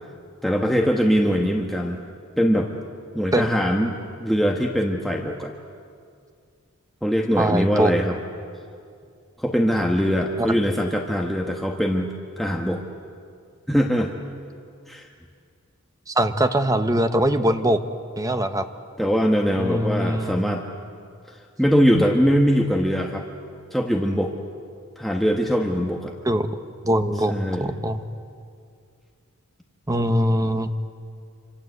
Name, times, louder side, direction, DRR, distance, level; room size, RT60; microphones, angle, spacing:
voice 1, 0.4-2.0 2.4-2.7 3.1-5.5 7.0-8.2 9.4-12.1 12.4-12.8 13.7-14.1 14.9-15.1 19.0-20.6 21.3-23.2 23.7-24.3 25.0-26.1 27.3-27.7, equal, ahead, 1 dB, 1.3 m, -22 dB
voice 2, 7.4-7.9 10.4-10.5 16.1-17.8 18.2-18.6 19.6-20.4 26.2-26.5 26.8-27.3 27.6-28.0 29.9-30.7, right 1 dB, 15° right, 9 dB, 1.1 m, -22 dB
27.0 x 26.0 x 8.1 m, 2.3 s
head